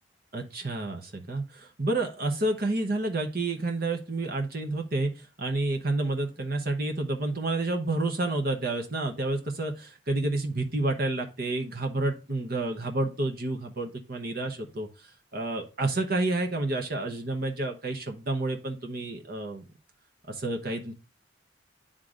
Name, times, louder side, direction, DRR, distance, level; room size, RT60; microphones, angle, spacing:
voice 1, 0.3-19.6 20.3-20.9, right 2 dB, 50° right, 3 dB, 0.9 m, -30 dB
11.0 x 3.7 x 2.4 m, 0.33 s
head